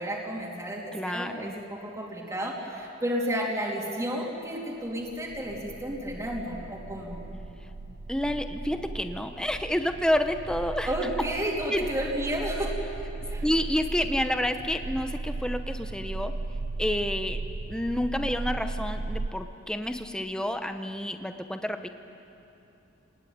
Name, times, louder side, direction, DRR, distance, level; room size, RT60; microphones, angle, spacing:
voice 1, 0.0-7.2 10.9-12.7 13.3-13.4, equal, 15° right, -4 dB, 3.2 m, -32 dB
voice 2, 0.9-1.5 8.1-10.9 11.7-11.9 13.4-16.3 16.8-17.4 17.7-21.9, left 1 dB, 5° left, 7 dB, 0.9 m, -29 dB
sound 1, 4.9-19.3, right 2 dB, 90° right, 0.6 m, -36 dB
27.0 x 20.0 x 9.4 m, 2.9 s
head